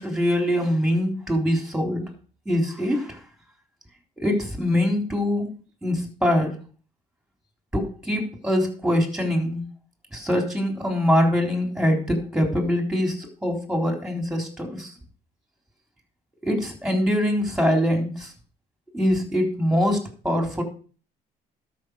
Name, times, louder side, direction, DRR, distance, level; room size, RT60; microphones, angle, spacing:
voice 1, 0.0-2.1 2.5-3.2 4.2-6.6 7.7-9.6 10.1-14.9 16.4-18.3 18.9-20.6, equal, 5° right, 4 dB, 3.8 m, -23 dB
12.5 x 6.1 x 6.4 m, 0.39 s
cardioid pair, 110°, 17 cm